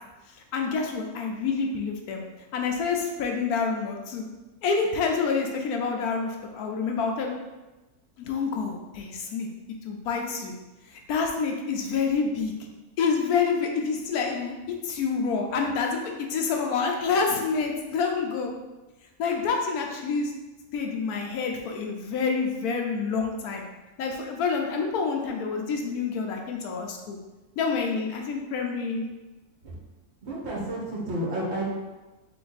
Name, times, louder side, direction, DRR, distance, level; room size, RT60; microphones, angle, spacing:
voice 1, 0.5-2.2 2.5-4.3 4.6-7.3 8.2-9.5 9.8-10.5 10.9-12.5 13.0-18.5 19.2-20.3 20.7-23.6 24.0-27.2 27.6-29.0, left 5 dB, 85° left, 2 dB, 1.2 m, -27 dB
voice 2, 30.2-31.7, right 1 dB, 50° right, -5 dB, 1.3 m, -31 dB
3.8 x 3.4 x 4.0 m, 1.1 s
omnidirectional pair, 1.5 m